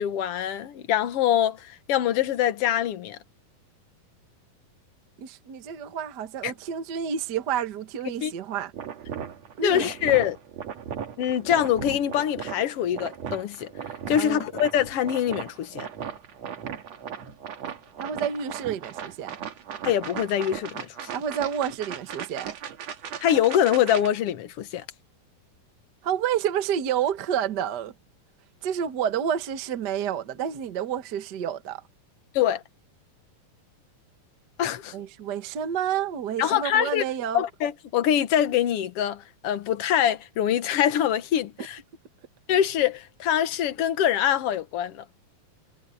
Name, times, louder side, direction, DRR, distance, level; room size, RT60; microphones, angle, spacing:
voice 1, 0.0-3.2 6.4-6.5 8.2-8.3 9.6-10.4 11.2-13.7 14.1-15.9 19.8-21.1 23.2-24.8 32.3-32.6 34.6-34.9 36.4-37.0 37.3-41.8 42.5-45.0, left 10 dB, 70° left, 1.4 m, -24 dB
voice 2, 5.2-8.7 9.6-9.9 14.2-14.4 18.0-19.4 21.1-22.5 26.0-27.9 28.6-31.8 34.9-37.4, right 9 dB, 90° right, 0.9 m, -29 dB
sound 1, 8.7-24.1, right 8 dB, 55° right, 2.6 m, -37 dB
omnidirectional pair, 4.2 m